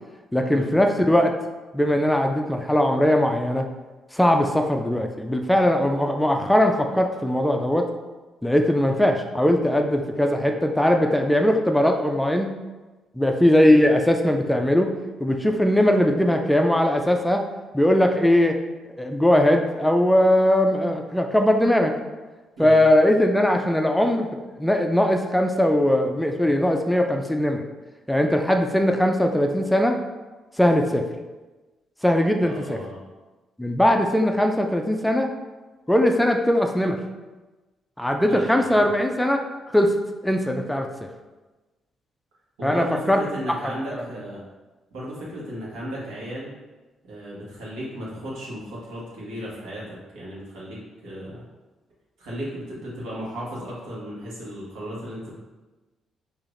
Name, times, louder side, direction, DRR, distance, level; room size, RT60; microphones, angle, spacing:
voice 1, 0.3-1.4 1.7-3.7 4.1-7.9 8.4-12.5 13.2-14.9 15.2-17.4 17.7-18.6 19.0-21.9 22.6-24.3 24.6-27.6 28.1-30.0 30.6-31.1 32.0-32.8 33.6-35.3 35.9-37.0 38.0-39.4 39.7-39.9 40.2-40.9 42.6-43.2, left 1 dB, 5° left, 4 dB, 0.4 m, -20 dB
voice 2, 32.4-33.0 38.3-38.9 42.6-44.4 44.9-46.5 47.0-51.4 52.2-55.4, equal, 90° right, -6 dB, 1.4 m, -35 dB
4.8 x 2.8 x 2.5 m, 1.2 s
cardioid pair, 90°, 0 cm